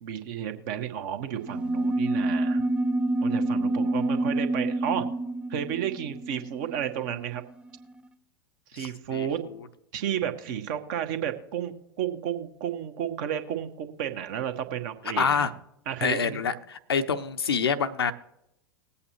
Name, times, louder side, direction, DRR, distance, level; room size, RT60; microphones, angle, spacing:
voice 1, 0.0-2.6 3.2-5.1 5.5-7.4 8.7-9.4 9.9-15.5 15.9-16.4, right 9 dB, 45° right, 6 dB, 1.4 m, -32 dB
sound 1, 1.4-7.4, right 2 dB, 5° right, 0.4 m, -27 dB
voice 2, 8.7-9.7 15.2-15.5 16.0-18.1, left 6 dB, 70° left, 10 dB, 0.8 m, -27 dB
20.0 x 8.5 x 3.0 m, 0.80 s
figure-of-eight pair, 90°, 13 cm